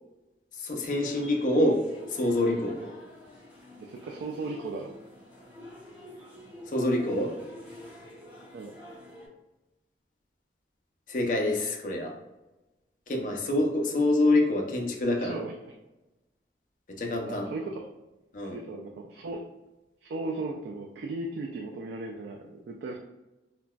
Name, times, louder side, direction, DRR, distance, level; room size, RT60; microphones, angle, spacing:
voice 1, 0.5-1.8 2.1-2.8 6.7-7.3 11.1-12.1 13.1-15.4 17.0-17.5 18.3-18.6, left 1 dB, 45° left, 1 dB, 0.5 m, -26 dB
sound 1, 0.8-9.3, left 1 dB, 10° right, 0.7 m, -47 dB
voice 2, 3.8-4.9 8.5-8.7 15.2-15.5 17.2-17.7 18.5-19.4 20.0-23.0, right 2 dB, 70° right, 1 dB, 0.3 m, -36 dB
3.8 x 2.2 x 2.2 m, 1.0 s
head